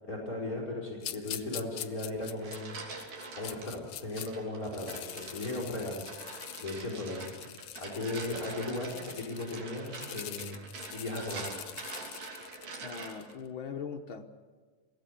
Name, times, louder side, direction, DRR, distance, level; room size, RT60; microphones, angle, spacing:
voice 1, 0.1-7.5 7.8-10.6 10.9-11.5, left 2 dB, 25° left, 0 dB, 5.6 m, -37 dB
sound 1, 1.0-4.3 4.6-13.3, left 11 dB, 75° left, 1.5 m, -44 dB
sound 2, 2.1-3.7 4.2-13.4, right 4 dB, 90° right, 4.8 m, -45 dB
voice 2, 12.8-14.2, left 6 dB, 90° left, 3 dB, 1.0 m, -40 dB
23.5 x 17.0 x 8.5 m, 1.5 s
omnidirectional pair, 3.8 m